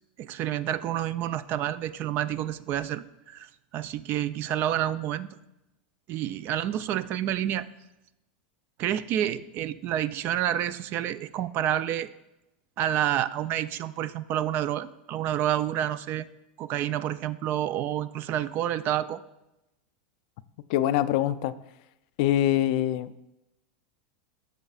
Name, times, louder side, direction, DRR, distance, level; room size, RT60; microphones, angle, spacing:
voice 1, 0.2-5.3 6.1-7.7 8.8-12.1 12.8-16.3 16.6-19.2, right 11 dB, 45° right, 15 dB, 0.4 m, -29 dB
voice 2, 20.7-21.5 22.2-23.1, left 12 dB, 60° left, 14 dB, 0.4 m, -24 dB
14.0 x 6.3 x 2.4 m, 0.93 s
hypercardioid pair, 115°, 5 cm